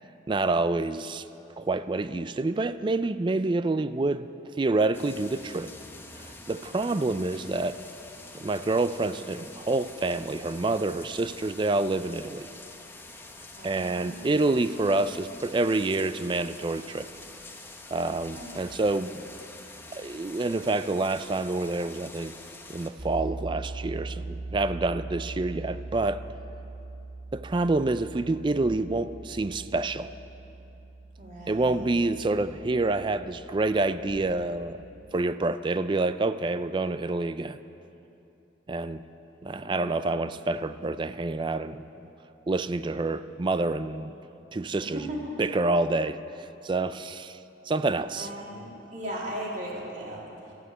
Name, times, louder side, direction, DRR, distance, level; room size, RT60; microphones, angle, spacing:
voice 1, 0.3-1.2 1.6-4.3 4.6-5.7 6.2-7.8 8.3-12.5 13.6-17.1 17.9-19.1 19.9-22.3 22.7-26.2 27.3-30.1 31.5-34.8 35.1-37.6 38.7-39.0 39.4-41.8 42.5-44.1 44.5-45.1 45.4-46.2 46.6-47.4 47.7-48.3, right 2 dB, 25° right, 13 dB, 0.4 m, -27 dB
sound 1, 4.9-22.9, left 2 dB, 15° left, 0.9 m, -46 dB
voice 2, 13.6-14.3 18.3-18.5 31.2-31.9 39.6-39.8 44.7-45.4 48.2-50.5, equal, 45° right, -4 dB, 3.1 m, -38 dB
sound 2, 23.0-35.0, right 2 dB, 60° right, 3.8 m, -41 dB
13.5 x 9.5 x 8.9 m, 2.9 s
head